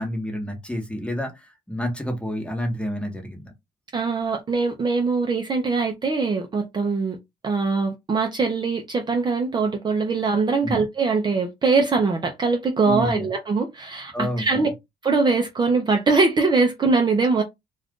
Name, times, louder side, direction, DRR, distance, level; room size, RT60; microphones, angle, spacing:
voice 1, 0.0-3.5 10.6-10.8 12.8-13.3 14.1-14.7, equal, 5° left, 1.1 m, -29 dB
voice 2, 3.9-7.2 7.4-14.7 15.0-17.4, right 4 dB, 25° right, 0.5 m, -22 dB
2.4 x 2.4 x 3.6 m
cardioid pair, 110°, 17 cm